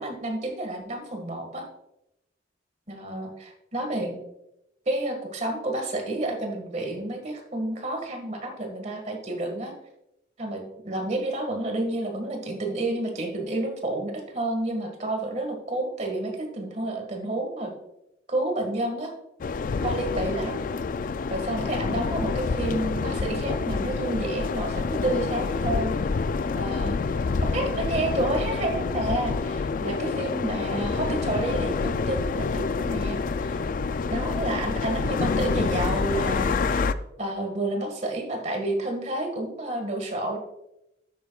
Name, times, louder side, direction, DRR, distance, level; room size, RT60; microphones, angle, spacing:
voice 1, 0.0-1.7 2.9-4.2 4.8-9.8 10.4-17.7 18.3-19.1 19.8-20.6 21.3-25.9 26.5-26.9 27.4-33.6 34.1-36.9 37.2-40.4, right 1 dB, 40° right, 3 dB, 1.8 m, -30 dB
sound 1, 19.4-36.9, left 4 dB, 45° left, 0.3 m, -27 dB
11.5 x 9.3 x 2.4 m, 0.86 s
head